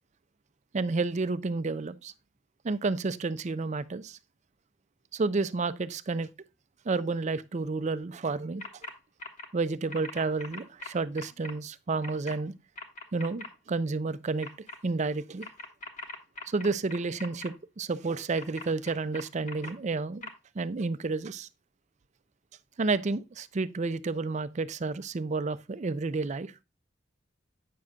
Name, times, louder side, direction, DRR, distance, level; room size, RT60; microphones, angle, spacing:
voice 1, 0.7-2.1 2.6-4.2 5.1-6.3 6.9-8.6 9.5-12.5 13.1-14.5 14.8-15.5 16.5-20.2 20.6-21.5 22.8-26.5, right 3 dB, 40° right, 0.4 m, -30 dB
sound 1, 8.6-8.9 9.2-9.5 9.9-11.5 12.0-12.3 12.8-13.5 14.4-14.8 15.4-17.5 18.4-19.7 20.2-20.3, left 2 dB, 40° left, 1.4 m, -41 dB
8.4 x 6.5 x 2.2 m
head